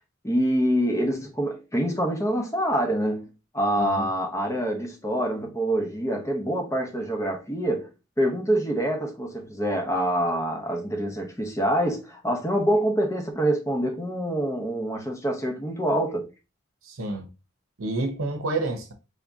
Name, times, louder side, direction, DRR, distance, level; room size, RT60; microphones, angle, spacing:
voice 1, 0.2-3.3 3.5-7.9 8.2-16.3, right 1 dB, 15° left, 0.7 m, -26 dB
voice 2, 3.8-4.1 16.8-17.3 17.8-18.9, right 2 dB, 80° right, 0.9 m, -29 dB
3.6 x 2.7 x 3.5 m
head